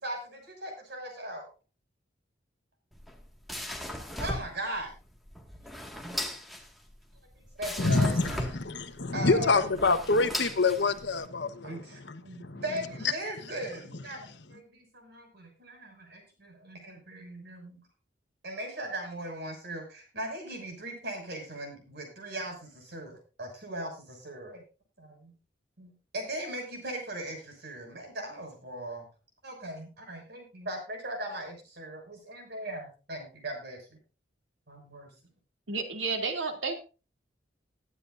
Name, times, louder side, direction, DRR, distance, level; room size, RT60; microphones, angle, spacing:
voice 1, 0.0-1.5 4.2-4.9 7.4-8.5 9.1-9.8 11.6-17.8 18.4-24.6 25.0-25.3 25.8-29.1 29.4-34.0 34.7-35.1, right 1 dB, 65° right, 6.3 m, -39 dB
sound 1, 2.9-11.3, left 1 dB, ahead, 1.9 m, -38 dB
voice 2, 7.8-11.8 12.1-12.6, left 3 dB, 70° left, 1.2 m, -26 dB
voice 3, 35.7-36.7, right 4 dB, 85° right, 2.6 m, -31 dB
21.0 x 10.0 x 2.6 m
head